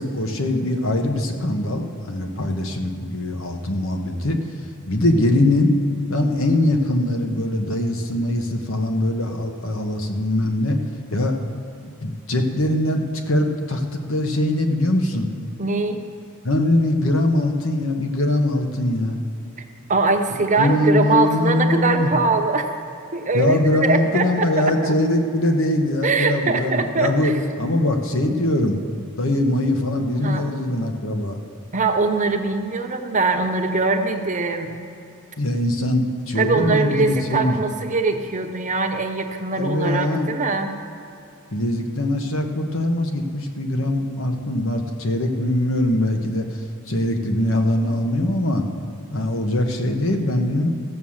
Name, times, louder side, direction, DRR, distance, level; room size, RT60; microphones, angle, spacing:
voice 1, 0.0-4.4 4.9-5.8 6.1-10.8 11.1-11.3 12.0-15.3 16.4-19.2 20.6-22.2 23.3-28.8 29.2-31.4 35.4-37.6 39.6-40.3 41.5-46.5 46.9-48.6 49.1-50.7, left 1 dB, 70° left, 4 dB, 1.2 m, -22 dB
voice 2, 15.6-16.0 19.9-22.7 23.1-24.9 26.0-27.3 30.2-30.4 31.7-34.7 36.4-40.7, right 3 dB, 35° right, 5 dB, 0.8 m, -22 dB
14.5 x 6.4 x 7.3 m, 2.7 s
head